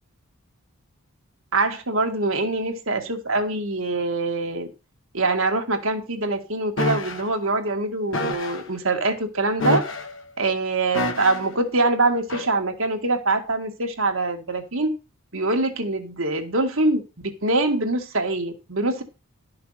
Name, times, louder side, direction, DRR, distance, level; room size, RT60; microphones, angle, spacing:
voice 1, 1.5-4.7 5.1-9.8 10.4-14.9 15.3-19.0, right 2 dB, 65° right, 1.9 m, -24 dB
sound 1, 6.8-7.2 8.1-8.6 9.6-10.2 10.9-11.5 12.3-12.5, left 2 dB, 55° left, 1.4 m, -26 dB
12.5 x 5.8 x 5.7 m
head